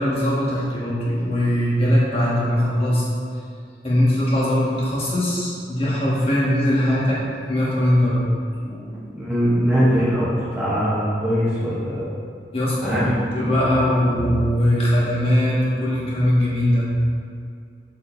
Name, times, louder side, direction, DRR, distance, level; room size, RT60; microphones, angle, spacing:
voice 1, 0.0-3.0 3.8-7.2 7.5-8.2 8.6-8.9 12.5-16.9, equal, 30° left, -7 dB, 1.6 m, -20 dB
voice 2, 8.9-12.1 12.8-13.3, equal, 10° right, -9 dB, 0.9 m, -21 dB
6.8 x 6.7 x 2.6 m, 2.3 s
head